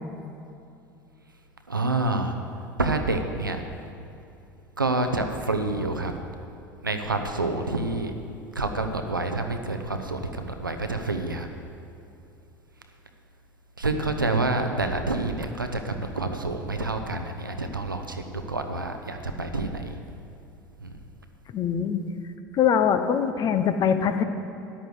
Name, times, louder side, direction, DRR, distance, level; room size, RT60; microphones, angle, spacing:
voice 1, 1.7-2.3 2.8-3.6 4.8-6.2 6.8-8.1 8.5-11.5 13.8-20.0 20.8-21.0, right 2 dB, 85° right, 6 dB, 0.8 m, -28 dB
voice 2, 21.5-22.0 22.5-24.2, left 8 dB, 35° left, 9 dB, 0.8 m, -23 dB
13.5 x 10.5 x 4.9 m, 2.6 s
figure-of-eight pair, 70°, 11 cm